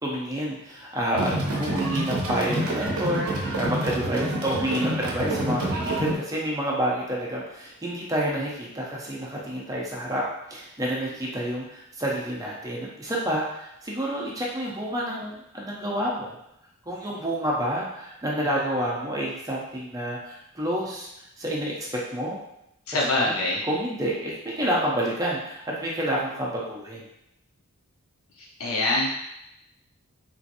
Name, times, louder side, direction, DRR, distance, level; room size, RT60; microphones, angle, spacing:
voice 1, 0.0-16.4 16.9-22.4 23.3-23.4 23.7-27.1, right 1 dB, 15° right, -4 dB, 0.6 m, -29 dB
sound 1, 1.1-6.1, right 1 dB, 70° right, 0.7 m, -28 dB
voice 2, 22.9-23.6 28.4-29.4, left 2 dB, 70° left, -4 dB, 0.8 m, -25 dB
3.0 x 2.8 x 2.5 m, 0.82 s
head